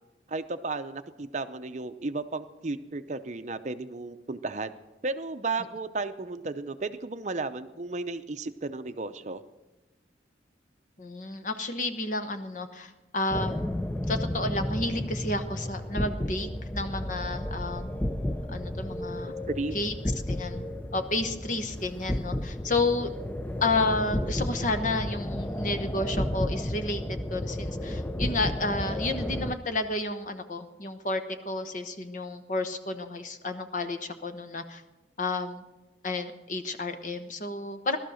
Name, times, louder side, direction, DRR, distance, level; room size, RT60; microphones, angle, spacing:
voice 1, 0.3-4.7 5.0-9.4 19.2-19.8, right 3 dB, 40° right, 9 dB, 0.6 m, -34 dB
voice 2, 11.0-13.7 14.1-17.9 18.5-19.3 19.7-19.9 20.3-20.6 20.9-23.1 23.6-34.8 35.2-35.6 36.0-38.0, left 2 dB, 45° left, 8 dB, 1.0 m, -31 dB
sound 1, 13.3-29.5, left 1 dB, 10° left, 0.4 m, -32 dB
17.5 x 12.5 x 6.3 m, 1.1 s
head